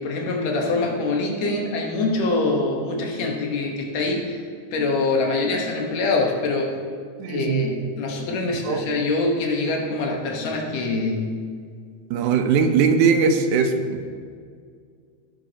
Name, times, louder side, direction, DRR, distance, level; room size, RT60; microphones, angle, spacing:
voice 1, 0.0-4.4 4.7-6.8 7.3-11.4, left 3 dB, 70° left, 0 dB, 2.4 m, -24 dB
voice 2, 7.2-7.7 8.7-8.8 12.1-14.1, right 5 dB, 85° right, 6 dB, 2.1 m, -20 dB
15.5 x 7.4 x 2.9 m, 2.1 s
omnidirectional pair, 3.3 m